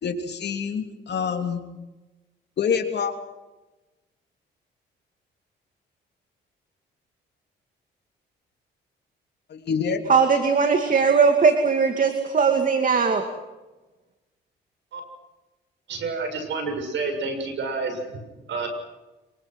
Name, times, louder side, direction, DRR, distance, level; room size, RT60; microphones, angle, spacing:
voice 1, 0.0-1.6 2.6-3.1 9.5-10.0, left 6 dB, 60° left, 5 dB, 3.2 m, -26 dB
voice 2, 10.1-13.3, right 5 dB, 40° right, 6 dB, 2.6 m, -19 dB
voice 3, 15.9-18.7, right 4 dB, 65° right, 6 dB, 7.1 m, -29 dB
27.0 x 24.5 x 6.3 m, 1.1 s
cardioid pair, 90°, 20 cm